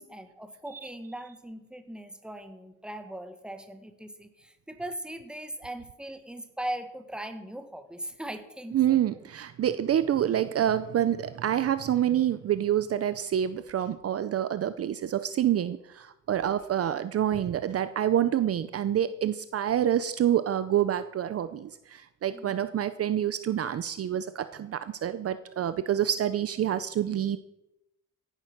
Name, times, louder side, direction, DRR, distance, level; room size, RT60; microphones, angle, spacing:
voice 1, 0.0-9.2 22.3-22.7, right 1 dB, 5° right, 8 dB, 1.5 m, -40 dB
voice 2, 8.7-27.4, right 10 dB, 45° right, 13 dB, 0.6 m, -27 dB
16.5 x 11.5 x 6.0 m, 0.92 s
cardioid pair, 130°, 32 cm